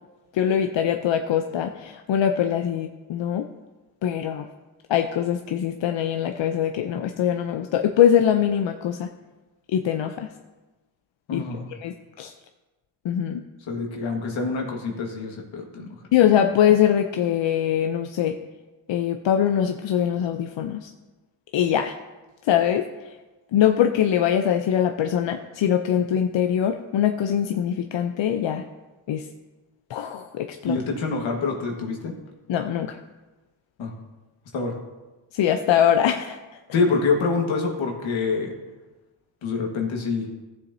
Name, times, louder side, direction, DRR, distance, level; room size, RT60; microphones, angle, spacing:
voice 1, 0.3-3.4 4.0-4.5 4.9-9.1 9.7-10.3 11.3-12.3 13.0-13.4 16.1-18.4 18.9-20.9 21.5-21.9 22.4-23.2 23.5-28.6 29.1-29.3 29.9-30.8 32.5-33.0 35.3-36.4, left 9 dB, 70° left, 5 dB, 0.6 m, -22 dB
voice 2, 11.3-11.7 13.7-16.0 30.7-32.1 33.8-33.9 34.5-34.8 36.7-38.5 39.4-40.3, left 4 dB, 90° left, 1 dB, 1.7 m, -26 dB
14.5 x 7.3 x 2.7 m, 1.2 s
cardioid pair, 85°, 46 cm